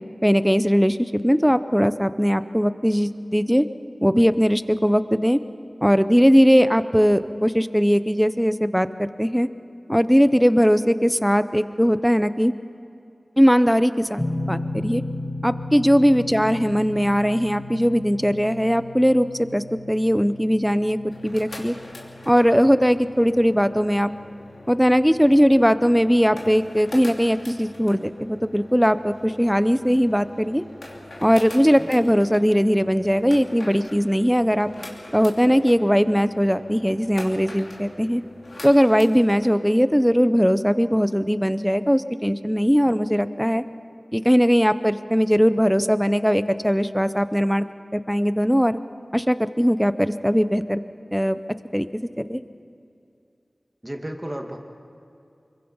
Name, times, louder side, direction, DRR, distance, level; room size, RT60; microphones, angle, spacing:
voice 1, 0.2-1.0 1.2-3.7 4.0-5.4 5.8-9.5 9.9-12.5 13.4-14.2 14.5-15.0 15.4-21.0 21.2-21.7 22.3-24.1 24.7-30.6 31.2-34.7 35.1-38.2 38.6-43.6 44.1-47.7 47.9-48.8 49.1-50.8 51.1-51.4 51.7-52.4, equal, ahead, 12 dB, 0.8 m, -19 dB
sound 1, 14.2-27.1, left 2 dB, 30° left, 1.5 m, -36 dB
sound 2, 21.0-39.5, left 1 dB, 90° left, 2.8 m, -43 dB
voice 2, 53.8-54.6, right 1 dB, 25° right, 2 dB, 2.1 m, -33 dB
25.5 x 22.5 x 5.6 m, 2.5 s
wide cardioid pair, 55°, 0 cm